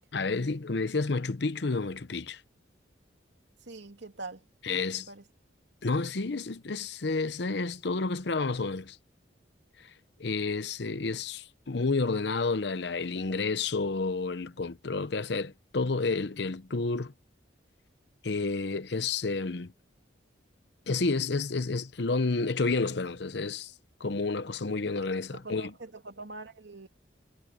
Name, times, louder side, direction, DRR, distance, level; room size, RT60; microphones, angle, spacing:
voice 1, 0.1-2.4 4.6-5.1 5.8-9.0 9.8-9.9 10.2-17.1 18.2-19.7 20.9-23.7 24.0-25.7, left 3 dB, 65° left, 0.8 m, -30 dB
voice 2, 3.6-4.4 4.9-5.2 24.8-24.9 25.3-26.9, right 3 dB, 70° right, 2.6 m, -44 dB
head